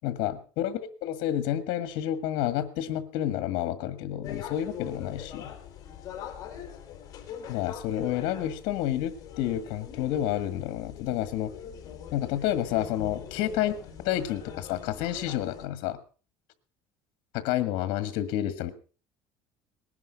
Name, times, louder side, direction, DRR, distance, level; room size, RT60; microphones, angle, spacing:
voice 1, 0.0-5.5 7.5-11.5 12.1-13.8 14.0-16.0 17.3-18.7, left 12 dB, 70° left, 12 dB, 1.7 m, -29 dB
sound 1, 4.2-15.7, left 8 dB, 40° left, 3.4 m, -43 dB
19.5 x 11.0 x 5.2 m, 0.38 s
cardioid pair, 150°, 9 cm